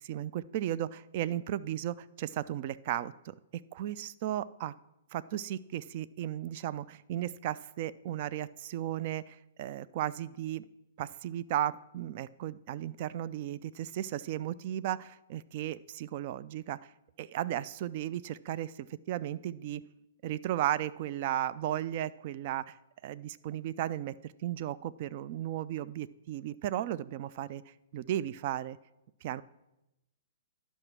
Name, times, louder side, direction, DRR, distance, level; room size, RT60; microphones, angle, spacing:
voice 1, 0.0-3.3 3.7-4.7 5.1-10.7 11.0-16.8 17.2-19.8 20.2-22.8 23.0-24.2 24.4-28.8 29.2-29.4, right 12 dB, 45° right, 16 dB, 0.3 m, -35 dB
10.5 x 5.5 x 6.0 m, 0.92 s
figure-of-eight pair, 115°, 0 cm